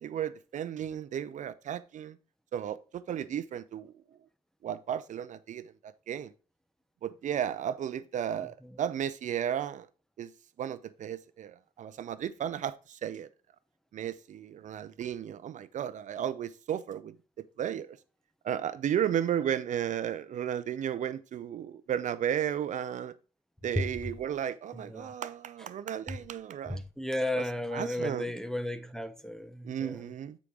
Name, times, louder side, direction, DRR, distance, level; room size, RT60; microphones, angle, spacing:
voice 1, 0.0-2.2 2.5-2.8 3.1-3.9 4.6-5.7 6.1-6.3 7.0-9.9 10.2-10.3 10.6-13.3 13.9-18.0 18.4-23.1 23.6-26.8 27.7-28.2 29.6-30.4, right 9 dB, 45° right, 0.5 m, -34 dB
voice 2, 8.4-8.8 23.8-23.9 24.7-25.1 26.1-26.2 26.7-30.1, left 1 dB, 5° left, 0.6 m, -34 dB
8.6 x 4.8 x 3.7 m
cardioid pair, 110°, 17 cm